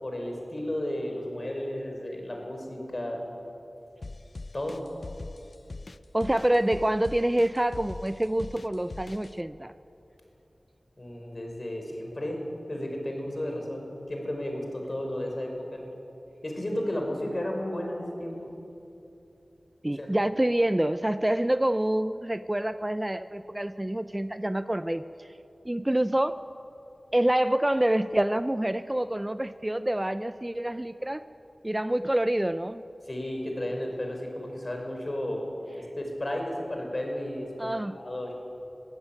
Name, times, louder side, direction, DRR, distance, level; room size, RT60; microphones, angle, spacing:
voice 1, 0.0-3.2 4.5-4.8 11.0-12.4 12.7-15.8 16.4-18.5 20.0-20.1 33.1-35.5 35.7-38.3, left 1 dB, 45° left, 2 dB, 5.7 m, -33 dB
sound 1, 4.0-9.3, left 3 dB, 65° left, 0.6 m, -41 dB
voice 2, 6.1-9.7 19.8-25.3 25.6-26.4 27.1-31.2 31.6-32.8 37.6-38.0, right 1 dB, 20° right, 12 dB, 0.6 m, -27 dB
22.5 x 15.5 x 9.1 m, 2.8 s
wide cardioid pair, 45°, 0 cm